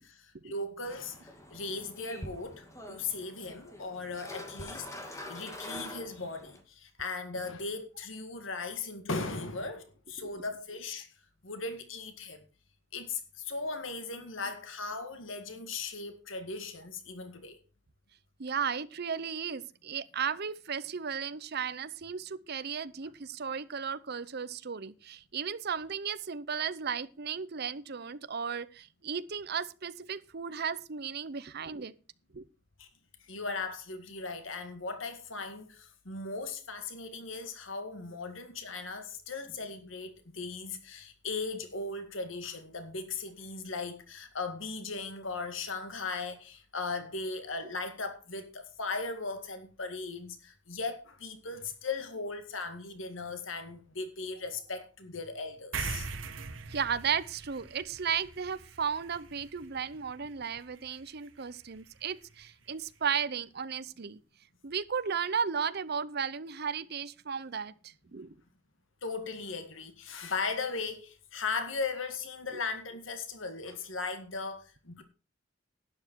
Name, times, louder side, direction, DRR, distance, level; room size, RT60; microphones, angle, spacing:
voice 1, 0.0-11.1 11.4-12.5 12.9-17.6 32.8-32.9 33.2-56.1 69.0-75.0, left 3 dB, 85° left, 2.0 m, -38 dB
sound 1, 0.8-6.6, left 1 dB, 15° left, 2.2 m, -45 dB
voice 2, 18.4-31.9 32.3-32.5 56.7-64.2 64.6-68.3, right 7 dB, 55° right, 0.7 m, -35 dB
sound 2, 55.7-62.5, right 4 dB, 75° right, 1.4 m, -43 dB
12.0 x 9.9 x 4.6 m
head